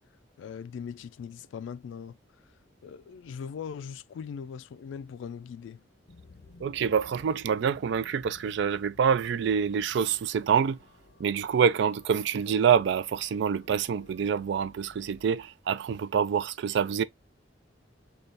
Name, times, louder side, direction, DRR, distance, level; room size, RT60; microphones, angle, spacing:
voice 1, 0.4-2.2 2.8-5.8, left 7 dB, 85° left, 0.3 m, -40 dB
sound 1, 6.1-15.5, left 3 dB, 55° left, 0.6 m, -56 dB
voice 2, 6.6-10.8 11.2-17.0, right 7 dB, 70° right, 0.3 m, -26 dB
4.0 x 2.3 x 3.2 m
head